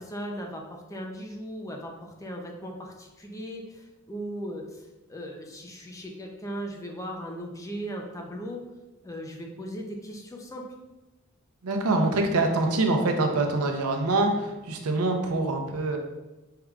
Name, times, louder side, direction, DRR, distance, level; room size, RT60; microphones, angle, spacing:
voice 1, 0.0-8.6 9.0-10.6, equal, 15° left, 1 dB, 0.5 m, -38 dB
voice 2, 11.6-16.0, right 2 dB, 85° right, 3 dB, 0.6 m, -25 dB
5.5 x 3.5 x 2.3 m, 1.0 s
head